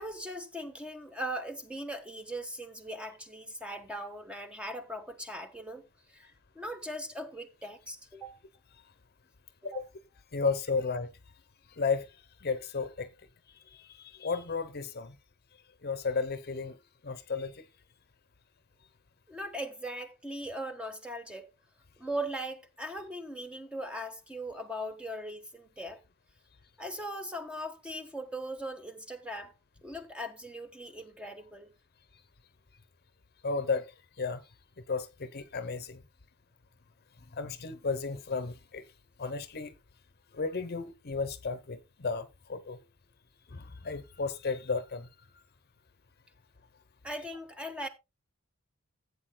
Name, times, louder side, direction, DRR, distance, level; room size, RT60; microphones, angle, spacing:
voice 1, 0.0-5.8 6.1-8.4 9.6-9.8 19.3-21.5 22.0-26.0 26.8-29.5 29.8-31.7 47.0-47.9, equal, 5° right, 1.2 m, -39 dB
voice 2, 10.3-11.1 11.7-12.2 12.4-13.1 13.7-15.2 15.8-16.8 17.0-17.6 33.4-33.9 34.2-34.4 34.9-36.0 37.3-38.8 39.2-39.7 40.3-42.8 43.5-45.1 45.3-45.4, left 4 dB, 45° left, 0.8 m, -33 dB
15.5 x 8.4 x 2.2 m
head